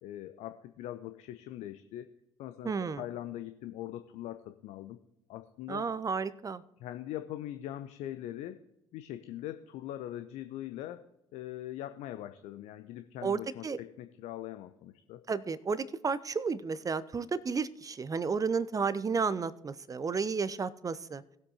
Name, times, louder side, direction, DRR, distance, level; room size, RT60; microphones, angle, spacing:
voice 1, 0.0-2.1 2.4-2.7 3.0-5.0 5.3-5.8 6.8-8.6 8.9-11.0 11.3-15.2, left 13 dB, 55° left, 10 dB, 0.6 m, -41 dB
voice 2, 2.6-3.0 5.7-6.6 13.2-13.8 15.3-21.2, right 5 dB, 25° right, 17 dB, 0.7 m, -32 dB
19.0 x 7.9 x 2.9 m, 0.82 s
figure-of-eight pair, 50°, 14 cm